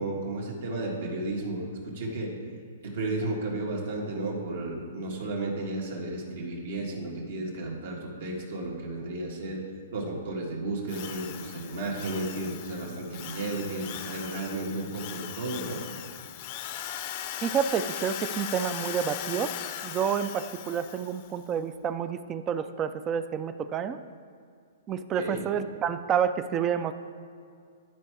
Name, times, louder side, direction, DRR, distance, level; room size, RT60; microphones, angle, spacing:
voice 1, 0.0-2.3 2.8-9.6 9.9-15.8 25.2-25.4, right 2 dB, 65° right, -2 dB, 1.8 m, -33 dB
Drill, 10.9-21.3, left 10 dB, 40° left, 0.5 m, -39 dB
voice 2, 17.4-19.5 19.8-24.0 24.9-26.9, right 8 dB, 20° right, 12 dB, 0.3 m, -29 dB
11.5 x 4.6 x 4.8 m, 2.3 s
hypercardioid pair, 155°, 0 cm